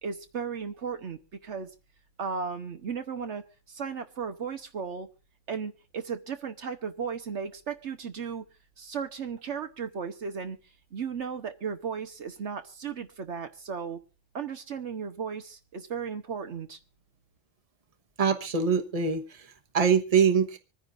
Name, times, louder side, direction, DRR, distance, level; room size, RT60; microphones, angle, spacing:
voice 1, 0.0-1.7 2.2-5.1 5.5-8.5 8.8-10.6 10.9-14.0 14.3-16.8, right 6 dB, 65° right, 7 dB, 1.3 m, -35 dB
voice 2, 18.2-20.6, right 6 dB, 30° right, 5 dB, 1.2 m, -24 dB
25.5 x 9.8 x 2.5 m, 0.33 s
omnidirectional pair, 1.3 m